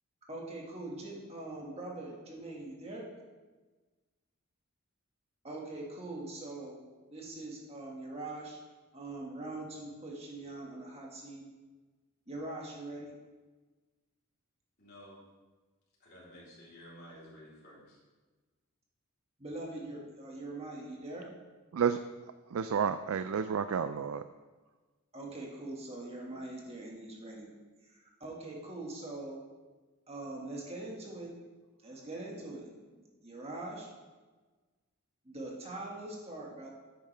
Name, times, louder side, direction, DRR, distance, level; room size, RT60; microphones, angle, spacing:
voice 1, 0.3-3.1 5.4-6.8 7.1-8.6 8.9-11.4 12.3-13.1 19.4-21.3 25.1-27.5 27.8-29.4 30.1-31.3 31.8-33.9 35.3-36.7, right 2 dB, 30° right, -2 dB, 1.8 m, -42 dB
voice 2, 14.8-15.2 16.0-18.0, equal, 45° left, -6 dB, 3.5 m, -52 dB
voice 3, 22.5-24.2, right 7 dB, 70° right, 11 dB, 0.4 m, -30 dB
11.0 x 8.6 x 3.4 m, 1.3 s
head